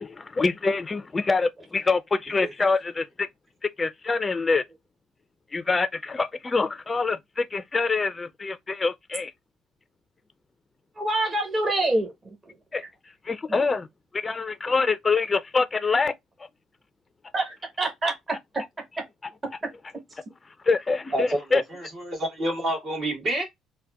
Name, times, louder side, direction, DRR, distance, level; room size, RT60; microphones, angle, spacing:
voice 1, 0.0-3.3 3.6-4.6 5.5-9.3 12.7-12.8 13.3-13.9 14.1-16.1 19.2-19.3 20.7-21.6, left 4 dB, 30° left, 0.4 m, -25 dB
voice 2, 11.0-12.1 12.8-12.9 17.3-18.6, right 2 dB, 35° right, 1.3 m, -26 dB
voice 3, 21.1-23.4, right 1 dB, 60° right, 1.9 m, -28 dB
3.9 x 2.1 x 2.2 m
hypercardioid pair, 55°, 0 cm